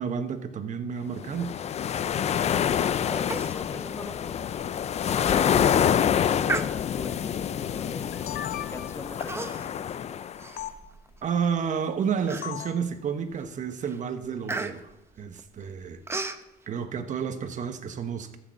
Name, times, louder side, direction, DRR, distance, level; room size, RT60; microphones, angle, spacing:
voice 1, 0.0-1.6 11.2-14.9 15.2-16.0 16.7-18.4, right 7 dB, 45° right, 1.3 m, -30 dB
sound 1, 1.2-10.5, left 9 dB, 40° left, 0.5 m, -27 dB
voice 2, 3.0-4.5 5.3-9.9, left 2 dB, 15° left, 1.3 m, -41 dB
Human voice, 3.3-3.6 3.9-4.0 4.6-4.7 5.2-5.5 6.4-7.2 7.9-8.2 9.2-9.8 10.2-11.2 11.7-11.8 12.3-12.8 13.3-13.6 13.8-16.4, right 3 dB, 15° right, 0.8 m, -35 dB
sound 2, 7.9-9.2 10.6-10.7 12.4-12.8, left 11 dB, 65° left, 0.8 m, -37 dB
14.0 x 6.4 x 6.9 m
cardioid pair, 110°, 17 cm